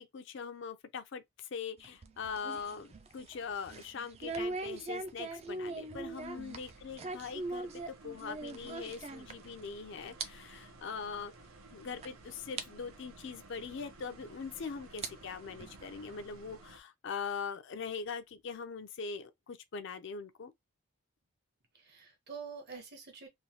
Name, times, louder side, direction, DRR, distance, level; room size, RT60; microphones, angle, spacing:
voice 1, 0.0-11.3 11.7-20.5, left 5 dB, 60° left, 0.4 m, -42 dB
sound 1, 1.8-9.7 10.0-10.3 10.6-10.7 11.4-11.5 12.0-12.1 12.6-12.7 14.0-14.1 14.8-16.2, right 3 dB, 30° right, 0.3 m, -41 dB
sound 2, 4.9-16.8, right 2 dB, 85° right, 0.7 m, -56 dB
voice 2, 6.3-6.7 21.7-23.3, right 5 dB, 50° right, 1.0 m, -47 dB
3.1 x 2.2 x 2.7 m
head